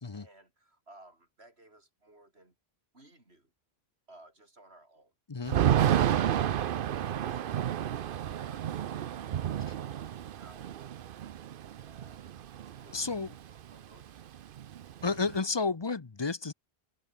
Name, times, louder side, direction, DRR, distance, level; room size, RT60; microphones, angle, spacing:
voice 1, 0.1-2.5 2.9-3.5 4.1-5.1 11.8-12.3 12.8-13.2 13.7-14.1, right 2 dB, 80° right, 5.7 m, -58 dB
Thunder / Rain, 5.5-13.3 13.6-13.7 14.0-15.4, right 10 dB, 65° right, 0.8 m, -30 dB
voice 2, 12.9-13.3 15.0-16.5, left 4 dB, 25° left, 0.8 m, -31 dB
omnidirectional pair, 1.1 m